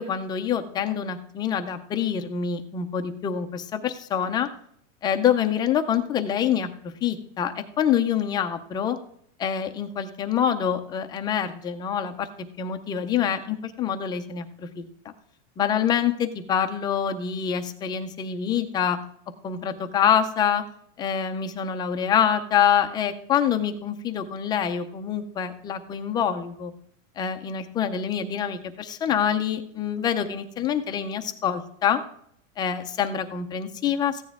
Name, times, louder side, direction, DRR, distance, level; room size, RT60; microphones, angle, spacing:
voice 1, 0.0-4.5 5.0-9.0 9.4-12.3 12.6-14.9 15.6-19.0 19.4-20.6 21.0-26.7 27.2-32.0 32.6-34.2, left 8 dB, 10° left, 7 dB, 0.3 m, -26 dB
14.5 x 9.3 x 3.5 m, 0.67 s
supercardioid pair, 150°, 39 cm